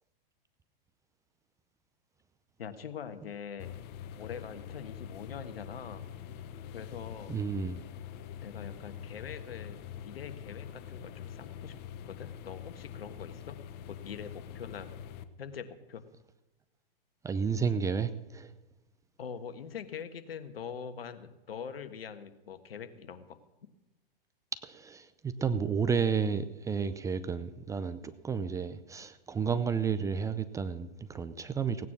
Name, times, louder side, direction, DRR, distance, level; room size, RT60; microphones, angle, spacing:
voice 1, 2.6-3.7 4.2-6.1 6.7-7.3 8.4-11.7 12.1-13.6 13.9-14.9 15.4-16.0 19.2-23.4, left 7 dB, 85° left, 10 dB, 1.5 m, -43 dB
sound 1, 3.6-15.2, left 9 dB, 35° left, 0.9 m, -44 dB
voice 2, 7.3-7.8 17.2-18.5 24.6-31.9, right 6 dB, 10° right, 12 dB, 0.5 m, -32 dB
17.0 x 9.6 x 6.0 m, 1.0 s
hypercardioid pair, 125°, 29 cm